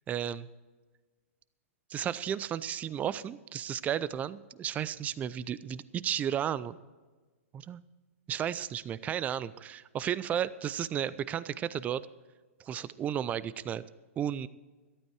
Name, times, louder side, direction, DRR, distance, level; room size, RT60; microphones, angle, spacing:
voice 1, 0.1-0.5 1.9-6.8 7.5-7.8 8.3-12.0 12.6-13.8 14.2-14.5, right 9 dB, 20° right, 18 dB, 0.5 m, -33 dB
13.5 x 12.0 x 4.7 m, 1.3 s
hypercardioid pair, 130°, 8 cm